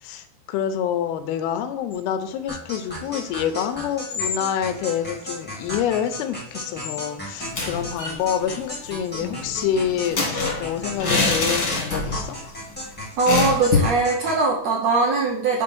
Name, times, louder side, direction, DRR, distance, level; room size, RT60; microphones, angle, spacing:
voice 1, 0.0-12.4, left 9 dB, 90° left, 9 dB, 2.6 m, -27 dB
sound 1, 1.9-7.9, left 5 dB, 75° left, 1.8 m, -39 dB
sound 2, 2.5-14.4, equal, 15° left, 0.3 m, -35 dB
sound 3, 7.4-8.2 8.5-8.6 8.9-12.3 12.6-12.7 13.3-14.0, left 3 dB, 55° left, 1.2 m, -24 dB
voice 2, 13.2-15.6, right 3 dB, 80° right, -2 dB, 1.5 m, -21 dB
6.5 x 3.7 x 6.1 m, 0.66 s
omnidirectional pair, 4.4 m